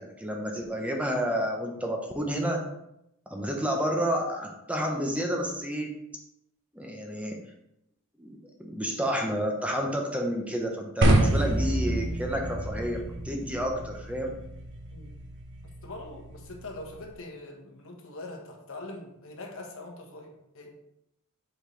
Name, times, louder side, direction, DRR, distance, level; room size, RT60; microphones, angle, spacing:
voice 1, 0.0-2.6 3.3-5.9 6.7-7.4 8.2-14.3, equal, 5° right, 1 dB, 0.8 m, -30 dB
sound 1, 11.0-17.1, right 1 dB, 55° right, 1.1 m, -28 dB
voice 2, 15.6-20.7, left 2 dB, 65° left, 2 dB, 1.2 m, -43 dB
7.5 x 4.4 x 3.3 m, 0.81 s
head